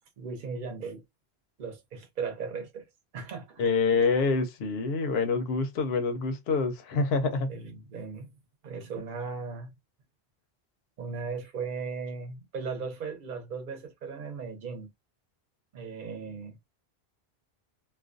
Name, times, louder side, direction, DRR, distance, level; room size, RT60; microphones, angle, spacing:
voice 1, 0.2-1.0 1.6-2.9 3.1-3.6 7.5-8.3 8.6-9.7 11.0-14.9 15.7-16.7, right 5 dB, 55° right, 0.8 m, -37 dB
voice 2, 3.6-7.5, left 4 dB, 75° left, 0.8 m, -26 dB
2.4 x 2.2 x 2.4 m
omnidirectional pair, 1.1 m